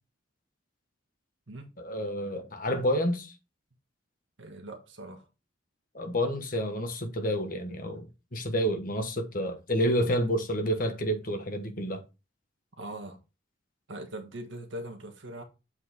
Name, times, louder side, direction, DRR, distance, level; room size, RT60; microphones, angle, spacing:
voice 1, 1.8-3.3 5.9-8.1 8.3-12.0, equal, 45° left, 1.3 m, -29 dB
voice 2, 4.4-5.3 12.8-13.2 13.9-15.4, right 1 dB, 70° right, 1.5 m, -41 dB
7.8 x 4.2 x 4.2 m
head